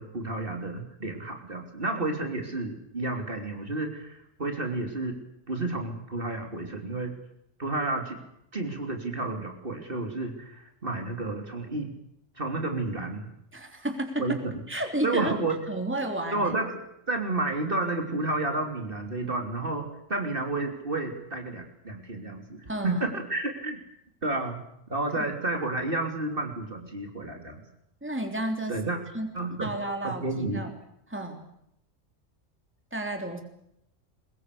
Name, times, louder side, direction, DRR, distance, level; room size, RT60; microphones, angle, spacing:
voice 1, 0.0-5.2 5.5-7.1 7.6-8.2 8.5-11.9 12.4-13.3 14.2-14.3 15.0-15.6 16.3-16.8 17.1-23.8 24.2-24.6 24.9-27.6 28.7-29.0 29.3-29.7 30.0-30.6, right 2 dB, 45° right, 3 dB, 3.3 m, -31 dB
voice 2, 13.5-15.4 15.7-16.5 22.7-23.1 28.0-28.8 29.1-29.3 29.6-30.7 31.1-31.5 32.9-33.4, right 1 dB, 10° right, 4 dB, 3.2 m, -32 dB
23.0 x 21.5 x 8.3 m, 0.79 s
omnidirectional pair, 1.3 m